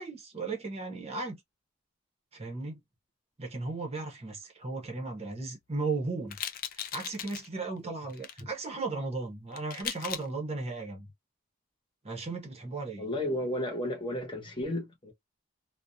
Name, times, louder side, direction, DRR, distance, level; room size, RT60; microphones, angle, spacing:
voice 1, 0.0-1.4 2.3-2.8 3.4-6.4 6.7-11.1 12.0-13.1, right 3 dB, 30° right, 0.7 m, -36 dB
sound 1, 6.3-7.5 8.1-8.4 9.5-10.3, left 9 dB, 45° left, 0.3 m, -38 dB
voice 2, 13.0-15.1, left 1 dB, 25° left, 1.0 m, -33 dB
2.4 x 2.1 x 2.6 m
head